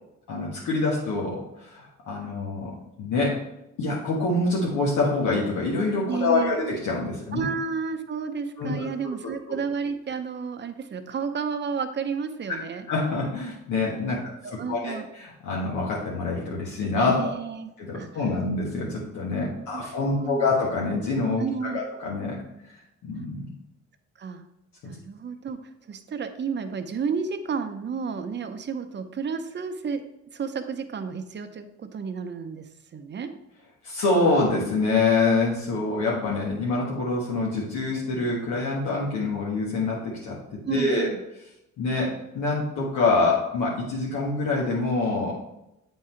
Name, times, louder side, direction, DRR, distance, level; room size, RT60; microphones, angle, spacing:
voice 1, 0.3-2.7 3.0-3.4 3.8-7.4 8.6-8.9 9.5-9.6 12.9-14.3 14.7-17.3 17.8-22.4 23.0-23.5 24.8-24.9 33.8-40.4 40.7-41.1 41.8-45.3, left 3 dB, 80° left, -4 dB, 1.4 m, -26 dB
voice 2, 6.1-6.6 7.3-12.9 14.1-14.2 14.4-15.1 17.0-18.1 19.7-20.5 21.4-21.8 24.2-24.4 24.8-30.0 30.3-33.3 40.6-41.2, right 6 dB, 35° right, 8 dB, 0.7 m, -32 dB
8.0 x 3.8 x 4.4 m, 0.87 s
cardioid pair, 90°, 30 cm